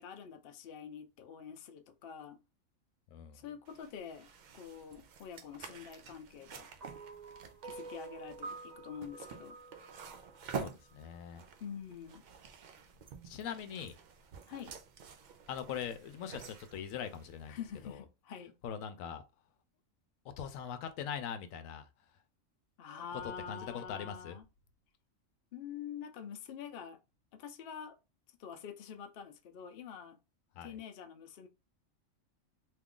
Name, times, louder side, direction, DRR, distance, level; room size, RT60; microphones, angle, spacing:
voice 1, 0.0-2.4 3.3-4.3 4.5-6.7 7.6-9.6 11.6-12.2 14.5-14.7 17.5-18.6 22.8-24.4 25.5-27.0 27.3-28.0 28.4-30.2 30.6-31.5, left 7 dB, 60° left, 0.6 m, -46 dB
voice 2, 3.1-3.4 10.5-11.4 13.2-14.0 15.5-17.6 17.8-18.0 18.6-19.2 20.2-21.9 22.9-24.4 30.6-30.8, left 8 dB, 85° left, 1.0 m, -42 dB
sound 1, 3.6-17.9, right 6 dB, 90° right, 0.4 m, -49 dB
sound 2, 6.8-11.2, right 3 dB, 45° right, 0.6 m, -48 dB
2.9 x 2.4 x 3.6 m
omnidirectional pair, 1.4 m